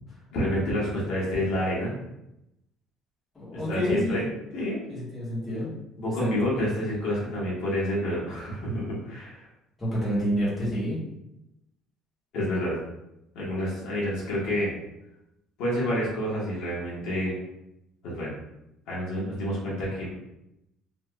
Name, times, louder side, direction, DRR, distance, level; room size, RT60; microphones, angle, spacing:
voice 1, 0.3-1.9 3.7-4.2 4.5-4.8 6.0-9.4 12.3-12.8 13.3-14.7 15.6-17.3 18.0-18.3 18.9-20.2, equal, 75° left, -6 dB, 1.2 m, -28 dB
voice 2, 3.3-4.3 4.9-5.7 6.2-6.6 8.6-8.9 9.8-11.0, equal, 15° left, -9 dB, 1.4 m, -29 dB
3.3 x 3.0 x 2.3 m, 0.87 s
cardioid pair, 145°, 0 cm